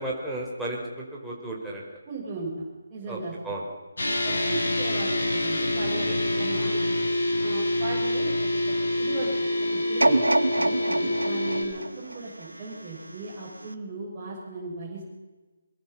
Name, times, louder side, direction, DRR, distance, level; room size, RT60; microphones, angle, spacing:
voice 1, 0.0-1.8 3.1-3.2 3.4-3.6 4.2-4.4 6.0-6.4 10.0-10.3, right 1 dB, ahead, -6 dB, 4.8 m, -34 dB
voice 2, 2.1-3.3 4.2-6.1 6.4-6.8 7.4-8.3 8.7-9.3 9.7-10.1 10.6-15.0, right 3 dB, 20° right, -7 dB, 7.3 m, -37 dB
sound 1, 4.0-11.6, left 1 dB, 65° left, 7.9 m, -26 dB
sound 2, 10.0-13.1 13.6-13.7, right 2 dB, 85° right, 1.8 m, -26 dB
23.5 x 23.0 x 5.8 m, 1.2 s
figure-of-eight pair, 150°, 0 cm